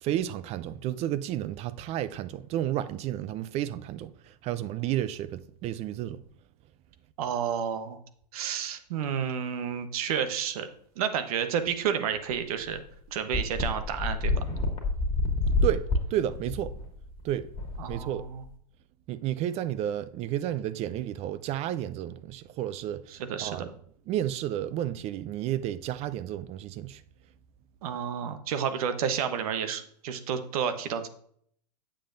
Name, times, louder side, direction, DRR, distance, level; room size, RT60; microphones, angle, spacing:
voice 1, 0.0-6.2 15.6-15.8 16.1-16.8 17.2-17.5 17.9-18.2 19.1-23.0 23.4-23.7 24.1-27.0, right 12 dB, 30° right, 0.4 m, -31 dB
voice 2, 7.2-8.0 8.3-10.7 11.0-12.8 13.1-14.5 17.8-18.4 23.1-23.7 27.8-31.1, right 8 dB, 60° right, 1.0 m, -30 dB
sound 1, 12.3-12.4 12.7-12.8 13.3-18.5, left 2 dB, 25° left, 2.2 m, -28 dB
8.5 x 7.7 x 2.6 m
hypercardioid pair, 110°, 21 cm